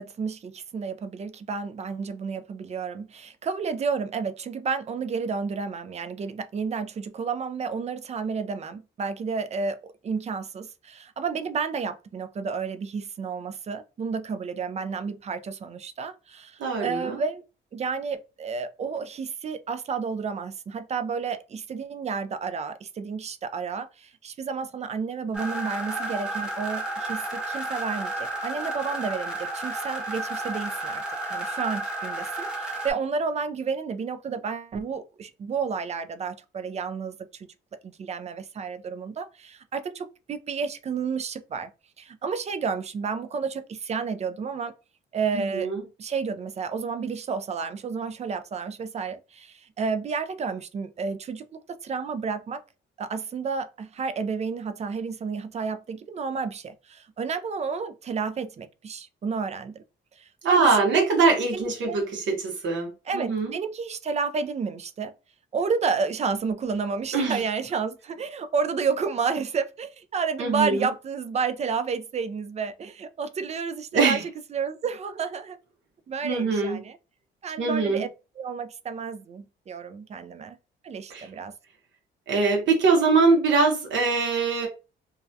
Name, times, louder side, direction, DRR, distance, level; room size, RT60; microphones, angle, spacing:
voice 1, 0.0-17.4 17.7-31.0 31.3-37.5 37.8-41.7 42.0-44.7 45.1-45.7 46.0-52.6 53.0-59.8 60.2-61.0 61.5-62.0 63.1-65.1 65.5-75.6 76.1-77.0 77.4-78.1 78.4-80.6 80.8-81.5, right 5 dB, 35° right, 0.3 m, -31 dB
voice 2, 16.6-17.2 45.3-45.8 60.4-63.6 67.1-67.4 70.4-70.9 73.9-74.2 76.2-76.8 77.6-78.0 81.1-81.3 82.3-84.7, right 4 dB, 70° right, 0.8 m, -23 dB
sound 1, 25.3-32.9, right 2 dB, 5° right, 0.8 m, -32 dB
2.3 x 2.1 x 2.6 m
cardioid pair, 90°, 20 cm